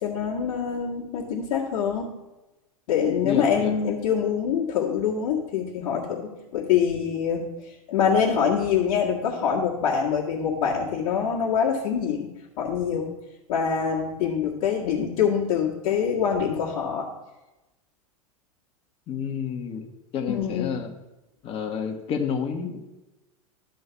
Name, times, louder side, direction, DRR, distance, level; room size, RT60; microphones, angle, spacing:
voice 1, 0.0-2.1 2.9-7.4 7.9-12.3 12.6-13.1 13.5-17.1 20.3-20.7, left 7 dB, 50° left, -5 dB, 1.6 m, -25 dB
voice 2, 3.2-3.7 19.1-19.9 20.1-20.9 21.4-22.8, left 7 dB, 30° left, 3 dB, 1.3 m, -29 dB
11.5 x 3.9 x 6.9 m, 1.0 s
figure-of-eight pair, 90°, 18 cm